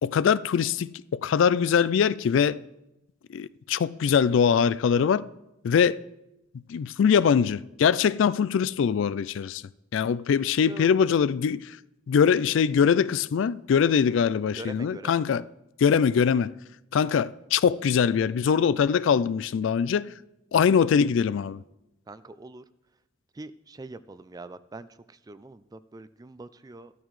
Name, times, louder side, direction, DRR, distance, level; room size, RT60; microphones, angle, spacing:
voice 1, 0.0-2.6 3.3-5.2 5.6-6.0 6.7-9.6 9.9-11.8 12.1-15.5 15.8-16.5 16.9-20.1 20.5-21.6, left 7 dB, 65° left, 0.3 m, -22 dB
voice 2, 10.7-11.0 14.5-15.2 22.1-22.6 23.3-26.9, right 2 dB, 20° right, 0.3 m, -43 dB
13.5 x 12.5 x 3.2 m
head